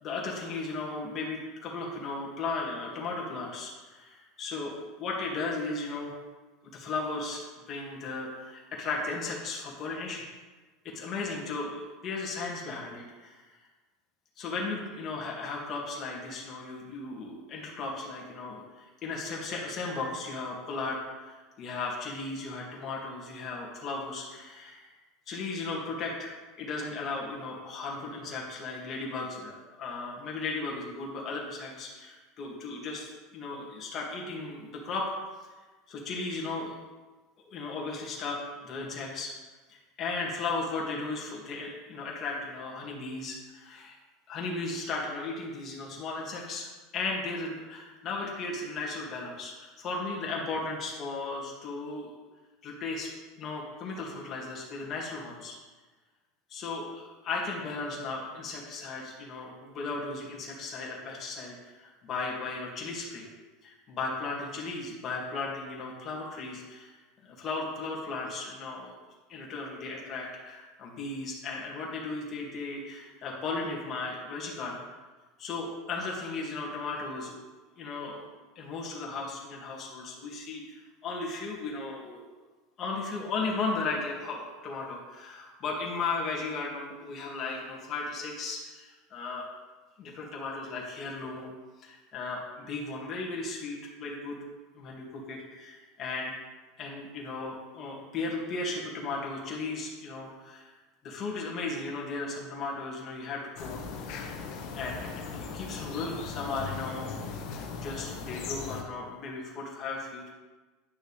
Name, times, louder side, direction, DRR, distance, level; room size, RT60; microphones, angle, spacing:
voice 1, 0.0-6.1 6.6-10.2 10.8-13.5 14.4-24.9 25.3-35.1 35.4-35.5 35.9-36.7 37.5-39.3 39.7-43.9 44.3-52.1 52.6-53.1 53.4-55.5 56.5-63.3 63.6-66.9 67.2-68.9 69.3-74.8 75.4-77.4 77.8-78.3 78.6-82.3 82.8-89.5 90.0-91.5 91.8-94.4 94.7-96.3 96.8-100.7 101.0-104.5 104.7-107.3 107.7-110.3, left 3 dB, 30° left, -3 dB, 2.1 m, -36 dB
sound 1, 103.6-108.8, left 5 dB, 55° left, 1.2 m, -38 dB
10.0 x 6.3 x 3.3 m, 1.3 s
supercardioid pair, 145°, 0 cm